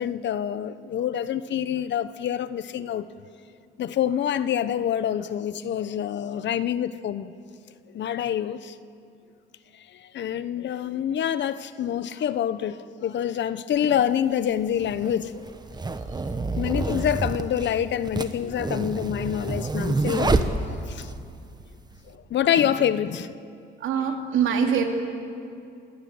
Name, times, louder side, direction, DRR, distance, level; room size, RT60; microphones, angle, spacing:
voice 1, 0.0-3.0 3.8-7.3 7.9-8.7 10.1-15.5 16.5-21.1 22.3-23.3, left 9 dB, 65° left, 0.9 m, -26 dB
sound 1, 13.7-13.8 14.7-21.2, right 3 dB, 20° right, 1.3 m, -27 dB
voice 2, 23.8-24.8, right 7 dB, 80° right, 2.8 m, -24 dB
28.0 x 13.5 x 9.4 m
cardioid pair, 90°, 20 cm